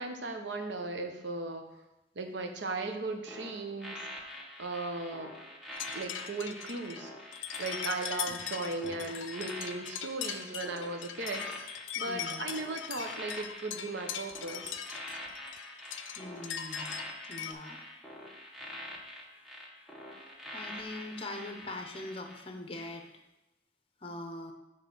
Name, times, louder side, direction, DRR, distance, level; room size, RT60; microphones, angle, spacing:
voice 1, 0.0-1.7 2.2-4.0 4.6-5.3 5.9-7.1 7.6-11.5 12.0-14.8, right 3 dB, 75° right, 5 dB, 0.8 m, -37 dB
sound 1, 3.3-22.4 22.7-23.0, left 1 dB, ahead, 0.9 m, -45 dB
sound 2, 5.7-17.5, left 9 dB, 90° left, 0.4 m, -40 dB
voice 2, 12.0-12.5 16.2-16.9 17.3-17.8 20.5-23.1 24.0-24.5, left 2 dB, 30° left, 5 dB, 0.7 m, -42 dB
7.1 x 3.3 x 5.9 m, 0.98 s
head